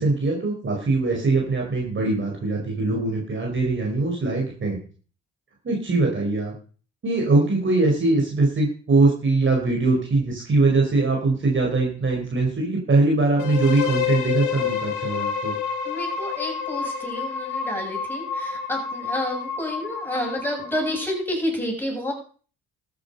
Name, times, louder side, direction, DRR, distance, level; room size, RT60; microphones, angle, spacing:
voice 1, 0.0-4.8 5.6-6.5 7.0-15.5, right 3 dB, 40° right, -1 dB, 4.9 m, -22 dB
sound 1, 13.4-21.2, left 7 dB, 90° left, 2.5 m, -29 dB
voice 2, 15.8-22.1, left 1 dB, 5° left, 0 dB, 7.7 m, -29 dB
13.5 x 9.3 x 5.6 m, 0.41 s
cardioid pair, 90°, 30 cm